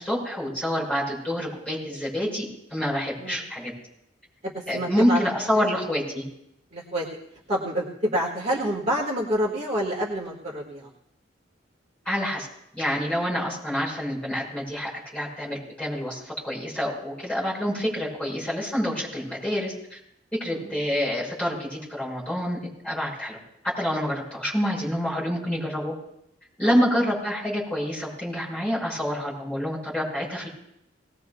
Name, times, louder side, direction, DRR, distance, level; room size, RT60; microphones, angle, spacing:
voice 1, 0.0-2.4 2.7-3.7 4.7-6.2 12.1-12.5 12.7-20.0 20.3-22.6 22.8-23.4 23.8-25.9 26.6-30.5, equal, 5° left, -6 dB, 5.9 m, -27 dB
voice 2, 4.4-5.2 5.5-5.7 6.7-7.1 7.5-10.9 20.5-20.7 26.6-26.7, equal, 35° right, -2 dB, 1.7 m, -28 dB
20.0 x 18.0 x 2.3 m, 0.77 s
head